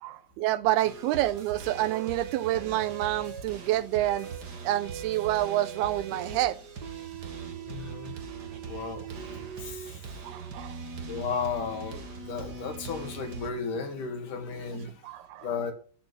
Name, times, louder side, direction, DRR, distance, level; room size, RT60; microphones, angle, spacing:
voice 1, 0.0-4.3 4.6-6.6 10.2-10.8 15.0-15.5, right 15 dB, 75° right, 2.6 m, -28 dB
sound 1, 0.8-13.5, right 5 dB, 60° right, 1.0 m, -40 dB
voice 2, 7.7-8.2 8.7-9.1 9.6-9.9 11.1-15.0 15.4-15.7, left 5 dB, 50° left, 3.6 m, -34 dB
13.0 x 7.1 x 9.8 m
omnidirectional pair, 5.0 m